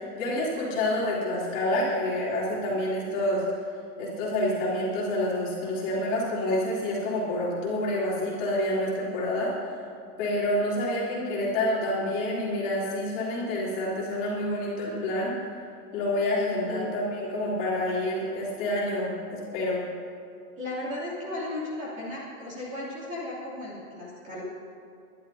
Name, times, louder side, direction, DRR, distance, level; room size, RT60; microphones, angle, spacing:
voice 1, 0.1-3.4 4.0-9.8 10.2-15.3 15.9-19.8, left 1 dB, 25° left, -6 dB, 3.3 m, -28 dB
voice 2, 20.6-24.4, left 1 dB, 15° right, -7 dB, 2.9 m, -35 dB
23.0 x 11.5 x 2.8 m, 2.5 s
hypercardioid pair, 165°, 44 cm